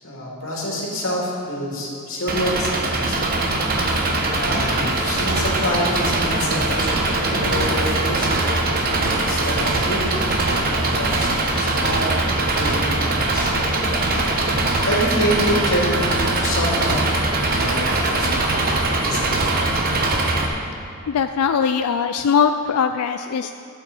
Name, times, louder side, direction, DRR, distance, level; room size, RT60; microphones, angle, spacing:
voice 1, 0.0-3.2 3.8-8.4 8.7-13.7 14.1-14.3 14.9-19.5, equal, 70° left, -3 dB, 2.5 m, -27 dB
Engine, 2.3-20.5, right 2 dB, 40° right, 1.0 m, -21 dB
voice 2, 21.1-23.5, left 6 dB, 90° left, 8 dB, 0.4 m, -20 dB
11.5 x 8.2 x 5.4 m, 2.5 s
head